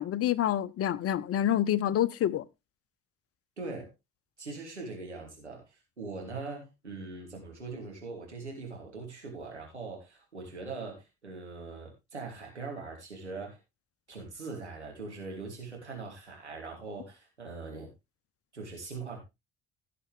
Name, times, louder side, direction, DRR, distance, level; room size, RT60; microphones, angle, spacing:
voice 1, 0.0-2.4, left 11 dB, 45° left, 0.9 m, -27 dB
voice 2, 3.6-3.9 4.4-5.6 6.0-13.6 14.1-17.9 18.5-19.2, right 3 dB, 90° right, 3.1 m, -41 dB
16.5 x 6.8 x 3.4 m
figure-of-eight pair, 50°, 33 cm